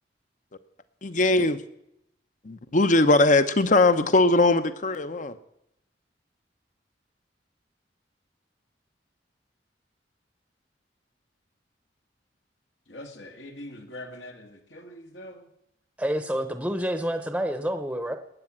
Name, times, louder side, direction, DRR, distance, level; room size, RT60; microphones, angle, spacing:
voice 1, 1.0-1.6 2.4-5.4, left 2 dB, 45° left, 12 dB, 0.9 m, -20 dB
voice 2, 12.9-15.5, left 1 dB, 80° left, 3 dB, 2.1 m, -43 dB
voice 3, 16.0-18.2, equal, 5° right, 8 dB, 0.9 m, -28 dB
20.0 x 9.0 x 7.4 m, 0.81 s
head